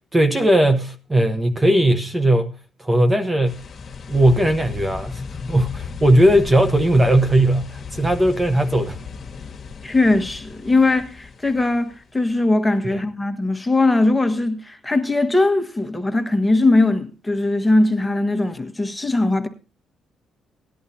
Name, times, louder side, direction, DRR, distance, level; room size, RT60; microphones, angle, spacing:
voice 1, 0.1-3.6 4.1-5.2 5.5-9.0 12.8-13.0, right 1 dB, 20° right, 1.1 m, -18 dB
sound 1, 3.5-12.1, left 5 dB, 45° left, 1.6 m, -36 dB
voice 2, 9.8-19.5, left 2 dB, 10° left, 1.5 m, -20 dB
18.5 x 11.0 x 2.8 m
cardioid pair, 90°, 0 cm